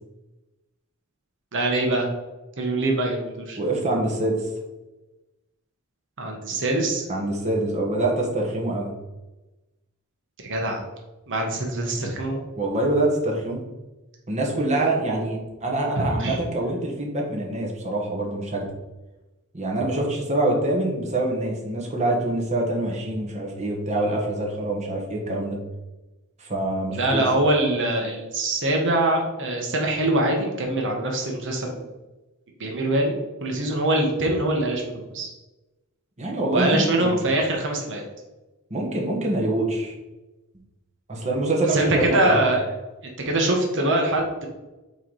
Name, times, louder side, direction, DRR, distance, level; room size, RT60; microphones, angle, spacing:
voice 1, 1.5-2.1 2.6-3.6 6.2-7.1 10.4-10.8 11.3-12.4 16.0-16.4 26.9-31.9 32.6-33.1 33.4-35.3 36.5-38.0 41.7-42.7 43.0-44.5, right 1 dB, 60° right, 1 dB, 1.2 m, -23 dB
voice 2, 3.6-4.5 7.1-8.9 12.6-13.6 14.3-18.7 19.5-25.6 26.4-27.2 36.2-37.2 38.7-39.9 41.1-42.4, right 2 dB, 30° right, -1 dB, 1.4 m, -25 dB
8.2 x 3.2 x 4.1 m, 1.1 s
head